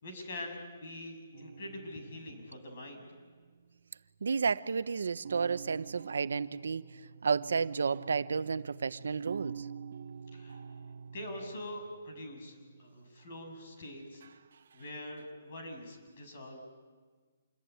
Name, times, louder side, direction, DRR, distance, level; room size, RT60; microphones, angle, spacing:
voice 1, 0.0-3.0 10.3-10.6 11.1-14.2 14.7-16.6, left 1 dB, 45° left, 4 dB, 7.0 m, -44 dB
sound 1, 1.3-4.2 4.5-4.7 5.2-13.8 14.2-15.2, right 6 dB, 60° right, 1.0 m, -48 dB
voice 2, 4.2-6.9 7.2-9.7, right 5 dB, 85° right, 14 dB, 0.9 m, -31 dB
27.5 x 23.0 x 9.4 m, 1.5 s
hypercardioid pair, 170°, 0 cm